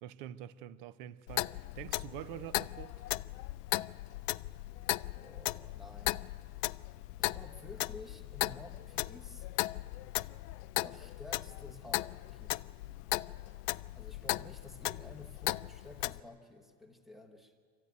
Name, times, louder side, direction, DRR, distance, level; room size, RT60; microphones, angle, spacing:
voice 1, 0.0-3.1, right 12 dB, 35° right, 0.4 m, -46 dB
Clock, 1.3-16.2, left 19 dB, 70° left, 0.5 m, -37 dB
voice 2, 5.1-6.2 7.1-9.5 10.8-12.6 13.9-17.5, left 2 dB, ahead, 0.9 m, -52 dB
25.5 x 15.0 x 9.3 m
supercardioid pair, 175°, 48 cm